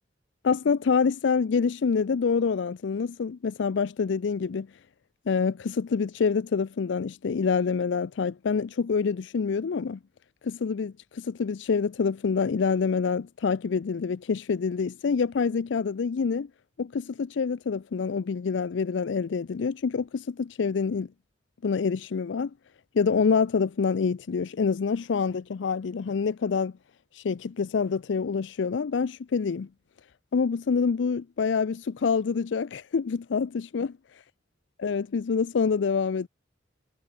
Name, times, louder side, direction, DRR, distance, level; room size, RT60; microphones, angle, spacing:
voice 1, 0.4-4.7 5.3-10.0 10.4-16.5 16.8-21.1 21.6-22.5 22.9-26.7 27.1-29.7 30.3-33.9 34.8-36.3, left 5 dB, 75° left, 0.4 m, -26 dB
head